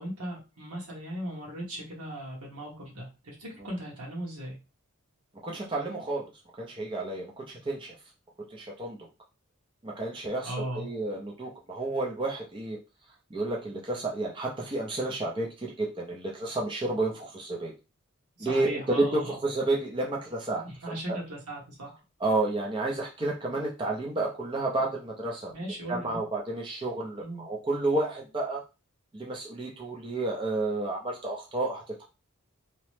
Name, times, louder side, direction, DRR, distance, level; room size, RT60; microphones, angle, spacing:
voice 1, 0.0-4.6 10.4-10.9 18.4-19.4 20.6-22.0 25.5-26.2 27.2-27.4, right 1 dB, 85° right, -2 dB, 1.2 m, -37 dB
voice 2, 5.4-6.3 6.6-7.9 8.5-9.0 9.8-12.8 13.3-17.7 18.4-21.2 22.2-28.6 29.1-32.0, right 2 dB, 20° right, -1 dB, 0.4 m, -31 dB
2.9 x 2.0 x 3.1 m, 0.29 s
head